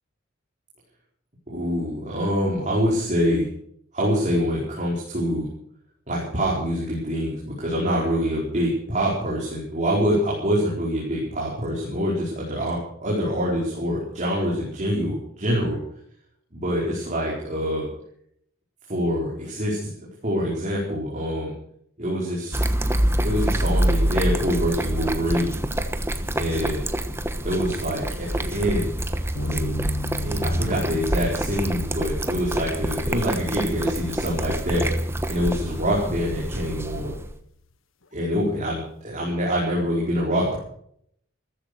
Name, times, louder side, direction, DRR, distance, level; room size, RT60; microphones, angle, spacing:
voice 1, 1.5-3.5 3.9-5.5 6.1-15.8 16.5-17.9 18.9-19.9 20.2-21.5 22.0-22.7 23.2-25.6 26.3-26.8 27.4-29.0 29.4-29.8 30.2-34.8 35.3-37.2 38.1-40.6, equal, 35° right, -4 dB, 4.7 m, -25 dB
sound 1, 22.5-37.3, right 1 dB, 10° right, 1.2 m, -26 dB
sound 2, 29.3-37.5, left 1 dB, 70° left, 1.3 m, -38 dB
15.0 x 14.5 x 6.4 m, 0.67 s
head